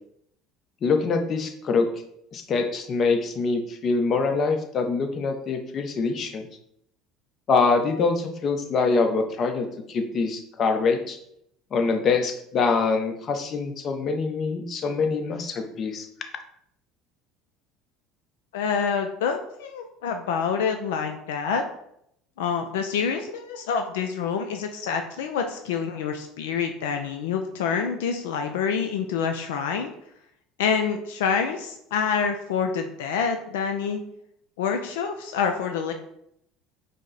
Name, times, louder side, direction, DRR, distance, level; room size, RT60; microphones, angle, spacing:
voice 1, 0.8-1.9 2.3-6.5 7.5-11.2 11.7-16.1, left 4 dB, 45° left, 6 dB, 0.6 m, -24 dB
voice 2, 18.5-21.6 22.4-29.9 30.6-34.0 34.6-35.9, left 6 dB, 85° left, 5 dB, 0.3 m, -27 dB
5.0 x 2.1 x 3.8 m, 0.74 s
hypercardioid pair, 85°, 0 cm